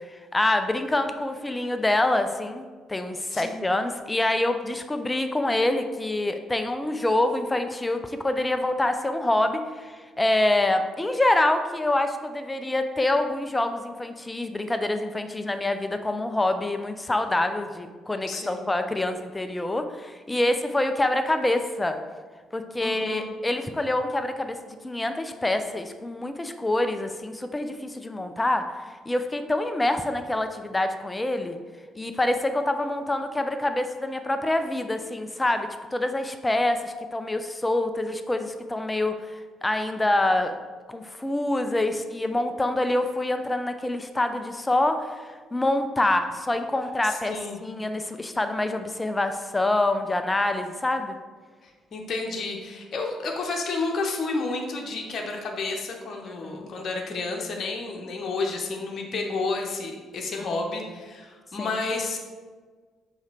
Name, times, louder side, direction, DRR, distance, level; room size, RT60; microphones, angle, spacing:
voice 1, 0.1-2.6 2.9-22.0 22.5-28.7 29.1-31.6 32.0-39.2 39.6-40.6 40.9-47.4 47.6-51.2 56.3-56.7 61.6-61.7, left 1 dB, 15° left, 8 dB, 0.6 m, -26 dB
voice 2, 18.3-18.6 22.8-23.3 47.0-47.6 51.6-62.2, left 3 dB, 45° left, 1 dB, 1.0 m, -31 dB
5.6 x 5.0 x 4.3 m, 1.5 s
figure-of-eight pair, 45°, 0 cm